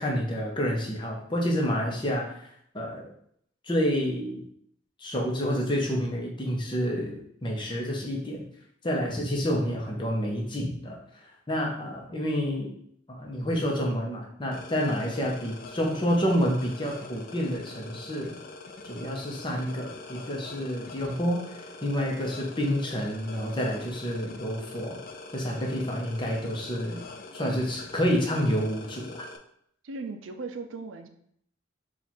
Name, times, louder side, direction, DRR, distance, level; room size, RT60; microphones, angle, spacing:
voice 1, 0.0-3.1 3.6-4.4 5.0-7.2 7.4-8.4 8.8-11.0 11.5-12.7 13.1-18.4 18.8-25.0 25.3-27.0 27.3-29.3, equal, 25° left, -1 dB, 0.8 m, -29 dB
sound 1, 14.5-29.4, left 3 dB, 45° left, 0.4 m, -44 dB
voice 2, 29.8-31.1, right 3 dB, 75° right, 7 dB, 0.4 m, -38 dB
4.4 x 2.5 x 4.2 m, 0.68 s
head